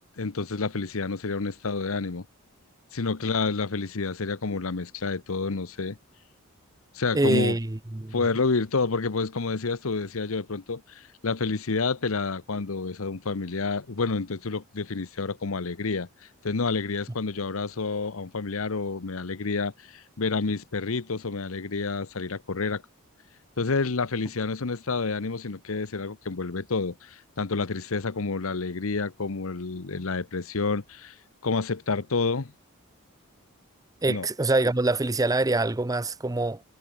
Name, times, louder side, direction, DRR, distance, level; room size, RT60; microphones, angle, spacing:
voice 1, 0.2-2.3 2.9-6.0 6.9-7.6 8.1-16.1 16.4-22.8 23.6-31.1 31.4-32.5 34.1-34.3, left 4 dB, 70° left, 0.9 m, -29 dB
voice 2, 7.1-8.2 34.0-36.6, right 2 dB, 15° right, 0.6 m, -25 dB
head